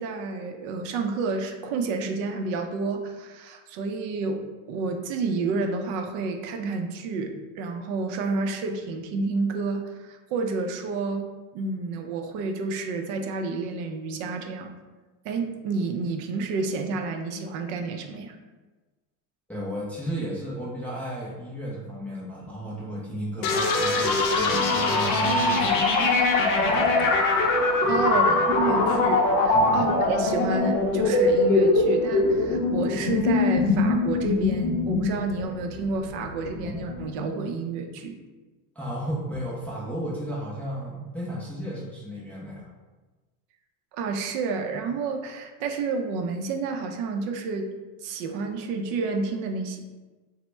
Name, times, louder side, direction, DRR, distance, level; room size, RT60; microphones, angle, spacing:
voice 1, 0.0-11.3 11.5-14.7 15.2-18.4 27.9-38.2 43.9-47.7 48.0-49.8, right 4 dB, 60° right, 4 dB, 0.5 m, -30 dB
voice 2, 19.5-25.8 27.8-28.0 29.5-29.9 38.8-42.7, equal, 5° left, -7 dB, 0.3 m, -33 dB
sound 1, 23.4-37.0, left 3 dB, 50° left, 0.6 m, -22 dB
3.0 x 2.0 x 3.2 m, 1.2 s
supercardioid pair, 125°, 43 cm